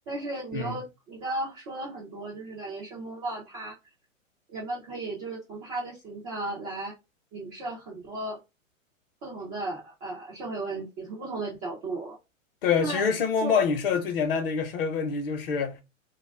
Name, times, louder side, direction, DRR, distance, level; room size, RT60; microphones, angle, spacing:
voice 1, 0.1-3.7 4.5-6.9 7.3-8.4 9.2-12.2 12.8-13.0 13.4-13.6, right 2 dB, 10° right, 0.3 m, -35 dB
voice 2, 12.6-15.8, left 6 dB, 45° left, 0.8 m, -26 dB
2.3 x 2.1 x 3.3 m
figure-of-eight pair, 115°, 40 cm